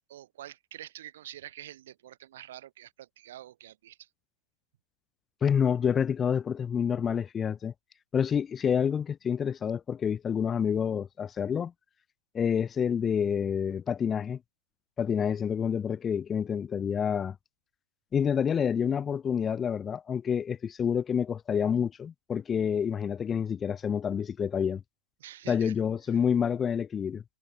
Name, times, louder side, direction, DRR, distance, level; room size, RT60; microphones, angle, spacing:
voice 1, 0.1-4.1 25.2-25.7 26.1-26.2, right 12 dB, 65° right, 5.8 m, -47 dB
voice 2, 5.4-7.7 8.1-11.7 12.3-14.4 15.0-17.3 18.1-24.8 25.5-27.2, left 7 dB, 20° left, 1.2 m, -28 dB
hypercardioid pair, 140°, 0 cm